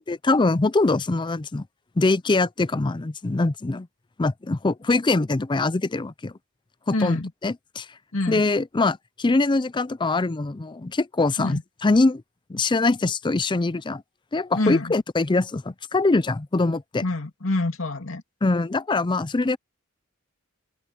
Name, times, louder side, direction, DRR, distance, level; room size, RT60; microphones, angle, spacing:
voice 1, 0.0-1.6 2.0-3.9 4.2-6.3 6.9-7.9 8.3-12.2 12.5-14.0 14.3-17.0 18.4-19.6, left 3 dB, 20° left, 0.5 m, -23 dB
voice 2, 6.9-7.3 8.1-8.4 11.4-11.6 14.5-14.9 17.0-18.2, left 2 dB, 75° left, 2.6 m, -26 dB
open air
head